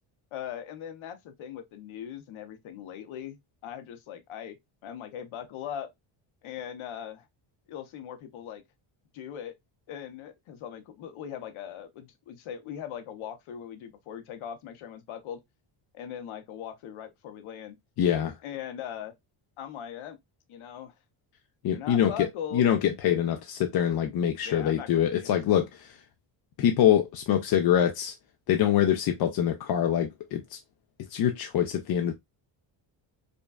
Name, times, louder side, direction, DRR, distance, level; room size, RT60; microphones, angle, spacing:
voice 1, 0.3-3.4 3.6-4.6 4.8-5.9 6.4-7.3 7.7-8.6 9.1-9.5 9.9-15.4 15.9-17.8 18.4-19.1 19.6-20.2 20.5-20.9 21.7-22.7 23.0-23.2 24.4-25.3, left 9 dB, 75° left, 0.8 m, -40 dB
voice 2, 18.0-18.3 21.6-22.1 22.5-23.4 23.6-26.0 26.6-28.1 28.5-30.6 31.1-32.1, left 10 dB, 50° left, 0.5 m, -24 dB
5.0 x 2.3 x 2.2 m
cardioid pair, 170°, 50 cm